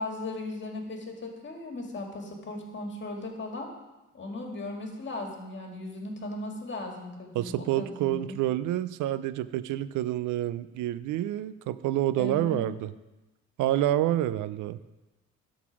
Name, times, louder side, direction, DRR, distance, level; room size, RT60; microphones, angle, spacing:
voice 1, 0.0-3.7 4.1-8.4 12.2-12.6, left 2 dB, 40° left, 2 dB, 1.9 m, -37 dB
voice 2, 7.3-12.9 13.6-14.8, right 13 dB, 80° right, 15 dB, 0.4 m, -28 dB
12.0 x 4.0 x 6.1 m, 1.1 s
cardioid pair, 90°, 30 cm